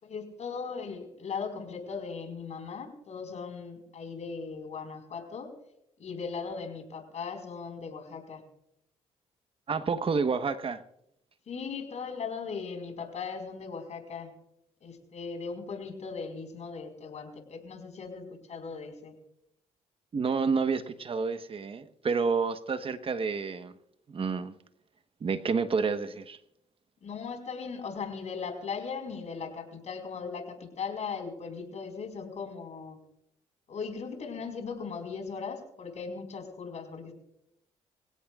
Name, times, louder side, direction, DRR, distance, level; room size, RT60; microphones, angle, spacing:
voice 1, 0.0-5.5 6.0-8.4 11.5-14.3 14.8-19.1 27.0-33.0 33.7-37.1, left 5 dB, 60° left, 5 dB, 4.8 m, -38 dB
voice 2, 9.7-10.8 20.1-23.7 24.1-24.5 25.2-26.4, right 5 dB, 45° right, 10 dB, 1.2 m, -29 dB
24.5 x 16.5 x 2.4 m, 0.81 s
supercardioid pair, 70°, 13 cm